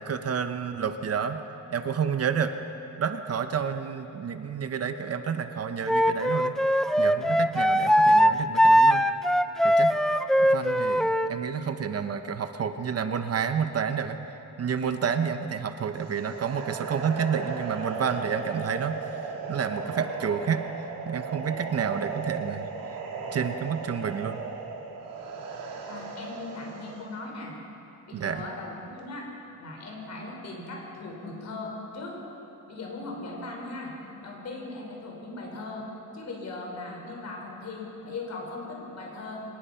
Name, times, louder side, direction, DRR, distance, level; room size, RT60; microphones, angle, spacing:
voice 1, 0.0-1.4 1.7-2.5 3.0-6.5 7.0-9.0 9.6-9.9 10.4-20.6 21.1-22.7 23.3-24.4 28.1-28.4, right 7 dB, 45° right, 8 dB, 1.1 m, -30 dB
Wind instrument woodwind instrument, 5.9-11.3, equal, ahead, 0.5 m, -21 dB
sound 1, 16.0-27.1, right 4 dB, 85° right, 3.1 m, -36 dB
voice 2, 25.8-27.6 28.1-29.3 29.6-32.2 32.7-33.9 34.2-35.8 36.1-39.4, left 2 dB, 55° left, 0 dB, 5.3 m, -38 dB
24.5 x 19.5 x 5.8 m, 2.9 s
cardioid pair, 120°, 33 cm